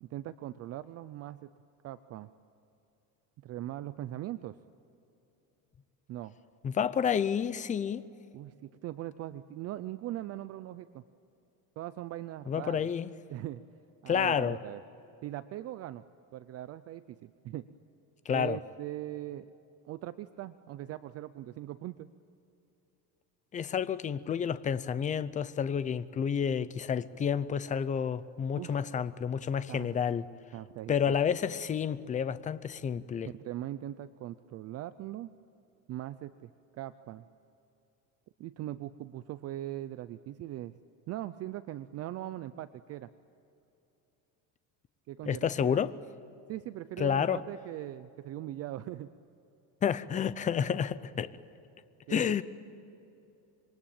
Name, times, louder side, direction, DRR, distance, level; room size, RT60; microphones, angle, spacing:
voice 1, 0.0-1.5 1.8-2.3 3.4-4.6 6.1-6.3 8.3-11.0 11.8-12.9 13.3-13.6 14.0-14.8 15.2-16.0 16.3-17.7 18.3-19.5 19.8-22.1 28.6-28.8 29.7-30.0 30.5-31.1 33.2-35.3 35.9-37.2 38.4-40.7 41.1-43.1 45.1-45.8 46.5-49.1 52.1-52.3, right 14 dB, 35° right, 0.5 m, -40 dB
voice 2, 6.6-8.0 12.5-13.1 14.1-14.6 18.3-18.6 23.5-30.2 30.9-33.3 45.3-45.9 47.0-47.4 49.8-51.3 52.1-52.4, left 7 dB, 20° left, 0.5 m, -30 dB
26.5 x 23.0 x 8.8 m
cardioid pair, 160°, 42 cm